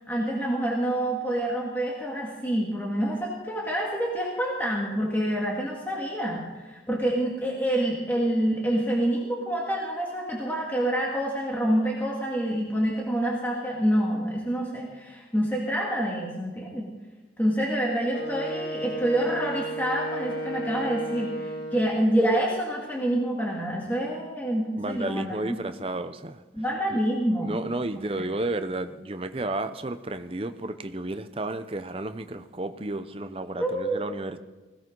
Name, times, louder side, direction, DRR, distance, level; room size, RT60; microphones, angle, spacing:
voice 1, 0.1-16.9 17.4-25.4 26.5-27.6 33.6-34.1, right 1 dB, 10° left, -3 dB, 2.0 m, -27 dB
Wind instrument woodwind instrument, 18.1-22.1, right 1 dB, 55° left, 2.9 m, -33 dB
voice 2, 24.8-26.4 26.9-27.0 27.4-34.4, right 2 dB, 30° right, 10 dB, 0.7 m, -32 dB
20.5 x 16.5 x 3.9 m, 1.2 s
head